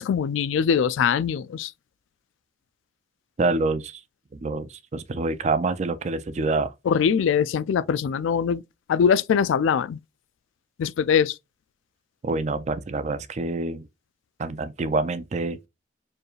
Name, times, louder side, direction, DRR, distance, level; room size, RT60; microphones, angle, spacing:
voice 1, 0.0-1.7 6.9-8.6 8.9-10.0 10.8-11.4, left 7 dB, 80° left, 0.3 m, -22 dB
voice 2, 3.4-4.0 4.3-6.7 12.2-13.9 14.4-15.7, right 3 dB, 35° right, 0.4 m, -26 dB
4.6 x 3.2 x 2.4 m
head